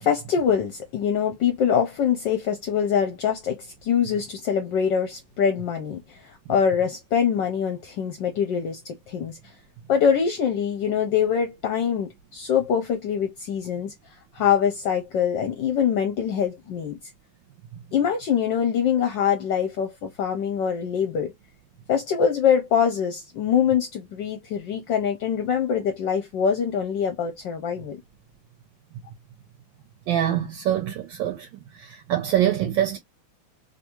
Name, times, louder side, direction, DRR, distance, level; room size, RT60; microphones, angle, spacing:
voice 1, 0.0-9.4 9.9-13.9 14.3-17.0 17.9-21.3 21.9-28.0, left 7 dB, 70° left, 1.2 m, -24 dB
voice 2, 30.1-31.5 31.8-33.0, right 11 dB, 75° right, 1.2 m, -24 dB
3.4 x 2.6 x 2.9 m
omnidirectional pair, 2.4 m